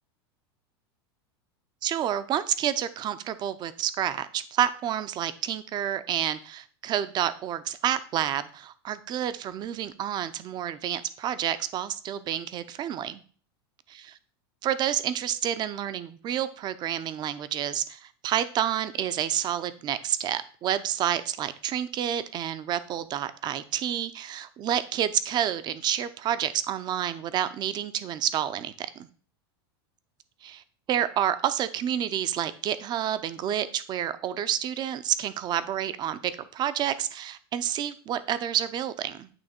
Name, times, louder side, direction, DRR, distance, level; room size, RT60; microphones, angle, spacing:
voice 1, 1.8-13.2 14.6-29.1 30.4-30.6 30.9-39.3, right 10 dB, 35° right, 14 dB, 0.5 m, -29 dB
8.8 x 3.0 x 4.3 m, 0.42 s
supercardioid pair, 125°, 13 cm